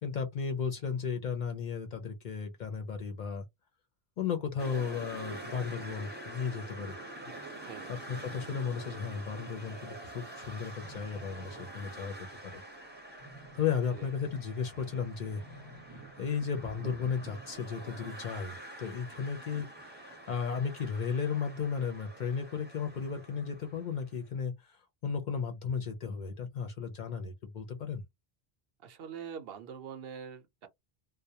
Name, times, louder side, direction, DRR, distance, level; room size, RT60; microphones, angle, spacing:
voice 1, 0.0-3.4 4.2-7.0 7.9-12.1 12.4-12.6 13.5-15.5 15.9-28.0, left 6 dB, 55° left, 0.6 m, -35 dB
sound 1, 4.6-24.1, right 1 dB, 10° right, 0.6 m, -46 dB
sound 2, 10.8-17.6, right 1 dB, 20° left, 0.7 m, -55 dB
voice 2, 28.8-30.7, right 7 dB, 70° right, 0.8 m, -44 dB
2.2 x 2.0 x 2.7 m
omnidirectional pair, 1.1 m